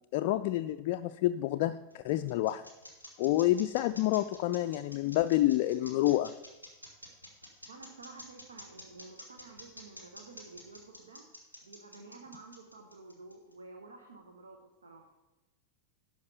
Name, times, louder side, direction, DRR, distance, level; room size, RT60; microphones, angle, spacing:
voice 1, 0.0-2.6 3.2-6.3, left 15 dB, 45° left, 8 dB, 0.3 m, -28 dB
sound 1, 1.5-13.5, left 1 dB, 90° right, 1.8 m, -50 dB
voice 2, 7.7-11.2 11.6-15.1, right 3 dB, 70° right, 3 dB, 1.1 m, -51 dB
12.0 x 5.1 x 6.9 m, 1.0 s
figure-of-eight pair, 90°, 0 cm